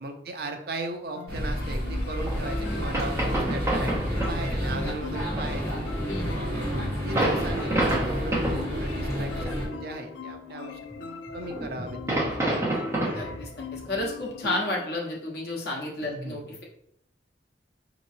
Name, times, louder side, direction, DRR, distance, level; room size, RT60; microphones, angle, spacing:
voice 1, 0.0-3.9 4.3-5.8 6.2-12.5 16.0-16.5, right 2 dB, 60° right, 4 dB, 0.6 m, -37 dB
sound 1, 1.1-14.9, left 5 dB, 80° left, 0.3 m, -41 dB
sound 2, 1.3-9.7, equal, 15° left, 1.3 m, -30 dB
sound 3, 2.3-2.4 2.7-2.8 2.9-4.4 4.7-4.8 5.3-8.9 9.2-9.5 10.3-10.9 11.3-14.5, right 1 dB, 15° right, 0.9 m, -29 dB
voice 2, 6.1-6.4 13.1-16.6, left 2 dB, 65° left, -2 dB, 1.1 m, -32 dB
5.1 x 3.0 x 2.7 m, 0.72 s
head